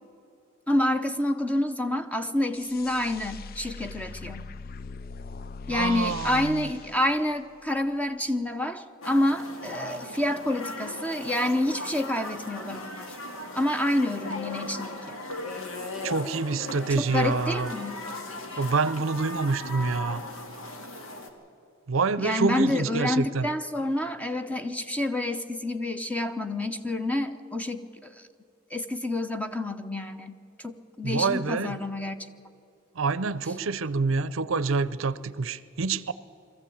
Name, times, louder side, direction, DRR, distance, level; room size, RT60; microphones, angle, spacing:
voice 1, 0.7-4.5 5.7-13.2 13.5-15.2 17.0-18.0 22.2-28.1 28.7-32.2, left 1 dB, 5° left, 8 dB, 0.8 m, -28 dB
sound 1, 2.5-7.9, left 4 dB, 45° left, 0.4 m, -41 dB
voice 2, 5.7-6.7 16.0-17.7 18.6-20.2 21.9-23.5 31.0-31.8 33.0-36.1, right 4 dB, 70° right, 17 dB, 0.6 m, -27 dB
sound 2, 9.0-21.3, left 2 dB, 80° left, 2.2 m, -38 dB
22.0 x 14.5 x 8.6 m, 2.5 s
head